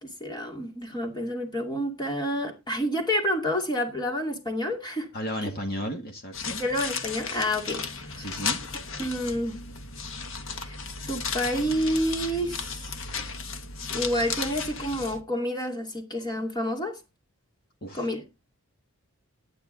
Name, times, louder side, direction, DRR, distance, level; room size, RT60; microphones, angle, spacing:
voice 1, 0.0-5.1 6.6-8.4 9.0-9.6 10.5-10.8 11.1-12.9 13.9-17.0 17.9-18.2, equal, 20° left, 2.4 m, -29 dB
voice 2, 5.1-6.7 8.2-8.6 17.8-18.1, equal, 45° left, 1.9 m, -34 dB
sound 1, 6.3-15.2, left 5 dB, 60° left, 1.2 m, -35 dB
12.0 x 9.5 x 4.0 m
head